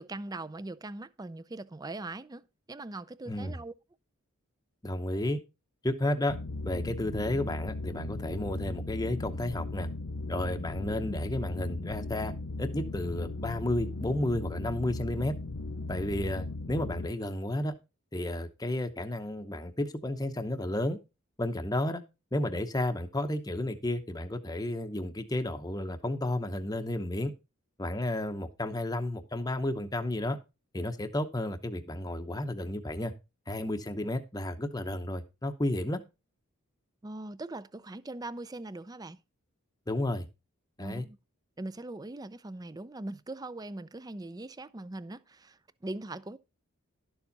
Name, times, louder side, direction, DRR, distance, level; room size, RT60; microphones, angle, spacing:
voice 1, 0.0-3.7 37.0-39.2 40.8-41.2 41.6-46.4, right 2 dB, 20° right, 0.5 m, -41 dB
voice 2, 3.3-3.6 4.8-5.4 5.8-6.4 6.6-9.9 10.3-12.3 12.6-15.3 15.9-17.7 18.1-21.0 21.4-22.0 22.3-27.3 27.8-30.4 30.7-33.1 33.5-36.0 39.9-40.3 40.8-41.0, left 1 dB, 15° left, 0.8 m, -32 dB
sound 1, 6.3-17.1, left 2 dB, 80° left, 0.7 m, -37 dB
12.0 x 7.1 x 4.0 m
head